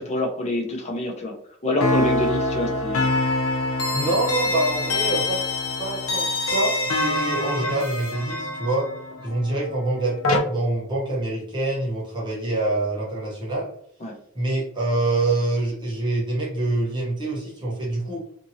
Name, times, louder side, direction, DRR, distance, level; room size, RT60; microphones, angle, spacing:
voice 1, 0.0-1.3 1.6-3.1 14.0-14.1, left 1 dB, 35° left, 0 dB, 0.6 m, -26 dB
sound 1, 1.8-10.4, left 2 dB, 85° left, 0.6 m, -25 dB
voice 2, 3.9-5.4 5.8-8.9 9.2-13.7 14.3-18.2, right 2 dB, 25° right, -5 dB, 0.8 m, -26 dB
2.8 x 2.6 x 2.7 m, 0.65 s
head